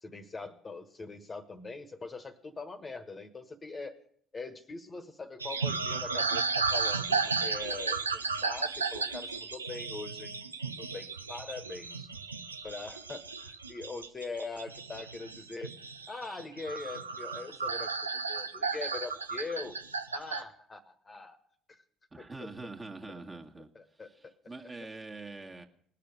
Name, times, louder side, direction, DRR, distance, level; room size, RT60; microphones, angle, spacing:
voice 1, 0.0-4.0 4.3-10.5 10.8-12.1 12.6-15.7 16.1-17.9 18.3-19.8 20.1-21.4 21.7-21.8 22.2-22.7 23.1-24.3 24.8-24.9, left 3 dB, 25° left, 10 dB, 1.3 m, -42 dB
sound 1, 5.4-20.4, right 4 dB, 85° right, 0.6 m, -34 dB
voice 2, 22.1-23.7 24.5-25.7, right 3 dB, 20° right, 4 dB, 1.7 m, -44 dB
20.0 x 6.7 x 9.3 m, 0.63 s
figure-of-eight pair, 55°, 0 cm